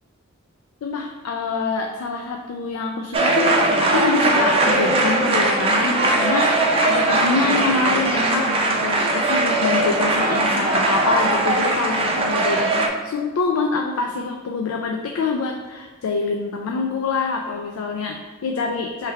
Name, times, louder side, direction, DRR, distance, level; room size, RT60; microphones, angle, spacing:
voice 1, 0.8-6.5 6.8-19.1, left 4 dB, 80° left, 3 dB, 0.4 m, -25 dB
sound 1, 3.1-12.9, right 2 dB, 25° right, 0.5 m, -20 dB
3.4 x 3.1 x 4.5 m, 1.3 s
head